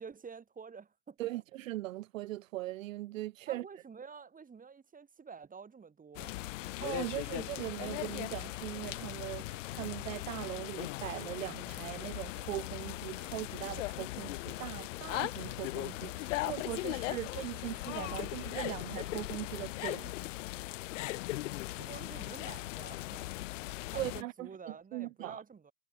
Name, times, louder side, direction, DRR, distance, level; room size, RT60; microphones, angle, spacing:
voice 1, 0.0-1.2 3.5-6.5 21.8-23.4 23.9-25.7, right 5 dB, 20° right, 7.2 m, -49 dB
voice 2, 1.2-3.6 6.8-20.1 23.9-25.4, right 16 dB, 75° right, 0.6 m, -40 dB
sound 1, 6.1-24.2, left 18 dB, 65° left, 1.4 m, -39 dB
hypercardioid pair, 90°, 40 cm